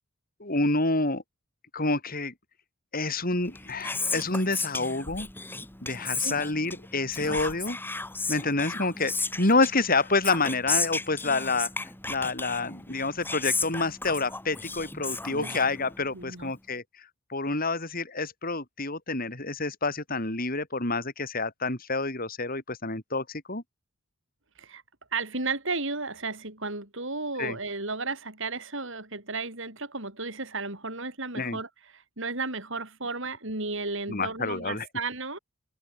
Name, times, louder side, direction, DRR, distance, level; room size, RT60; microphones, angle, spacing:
voice 1, 0.4-1.2 1.7-2.3 2.9-5.3 5.8-7.8 8.3-23.6 27.4-27.6 31.4-31.6 34.1-34.9, left 3 dB, 40° left, 4.5 m, -28 dB
Whispering, 3.4-16.2, left 3 dB, 10° left, 2.5 m, -34 dB
voice 2, 16.1-16.5 24.6-24.8 25.1-31.7 32.2-35.4, right 3 dB, 60° right, 7.6 m, -33 dB
open air
head